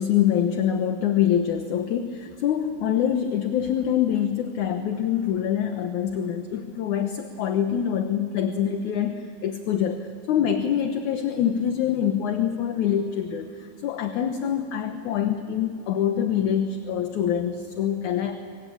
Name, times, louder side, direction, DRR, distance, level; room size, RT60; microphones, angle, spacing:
voice 1, 0.0-18.4, left 9 dB, 65° left, 7 dB, 2.3 m, -25 dB
29.5 x 23.5 x 8.6 m, 2.6 s
omnidirectional pair, 4.2 m